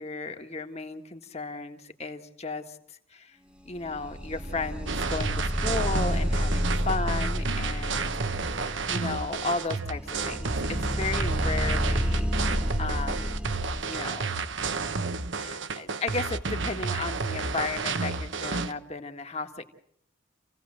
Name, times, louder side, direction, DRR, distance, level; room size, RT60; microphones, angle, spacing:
voice 1, 0.0-3.4 3.7-8.1 8.9-13.3 13.8-14.4 15.4-19.6, left 3 dB, 30° left, 6 dB, 1.8 m, -34 dB
sound 1, 3.7-13.8, equal, 5° right, 1.5 m, -30 dB
sound 2, 4.9-18.7, right 4 dB, 65° right, 1.1 m, -31 dB
28.5 x 17.0 x 7.6 m, 0.70 s
head